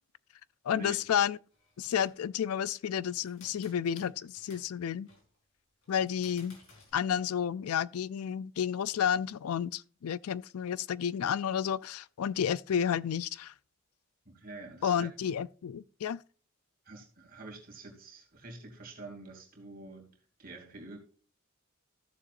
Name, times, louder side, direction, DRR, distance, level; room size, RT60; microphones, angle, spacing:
voice 1, 0.6-1.4 1.8-5.1 5.9-6.6 6.9-13.5 14.8-16.2, left 8 dB, 85° left, 0.4 m, -31 dB
sound 1, 1.5-2.3 3.1-4.7 5.0-5.4 5.8-6.9, left 3 dB, 65° left, 4.4 m, -58 dB
voice 2, 14.2-15.1 16.8-20.1 20.4-21.0, right 3 dB, 40° right, 2.8 m, -47 dB
14.5 x 6.9 x 2.5 m
head